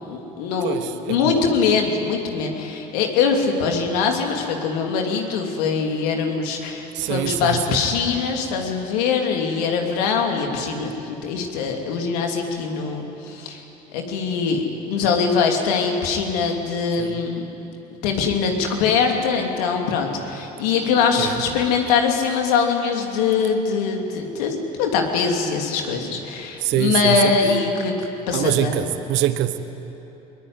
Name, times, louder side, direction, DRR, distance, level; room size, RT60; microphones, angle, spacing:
voice 1, 0.1-0.8 1.1-13.6 13.9-17.5 18.0-28.9, left 5 dB, 90° left, 2 dB, 3.0 m, -22 dB
voice 2, 0.6-1.5 6.9-7.8 17.0-17.2 21.2-21.4 26.6-27.3 28.3-29.6, right 13 dB, 70° right, 11 dB, 1.2 m, -24 dB
22.0 x 21.0 x 9.7 m, 3.0 s
supercardioid pair, 75°, 20 cm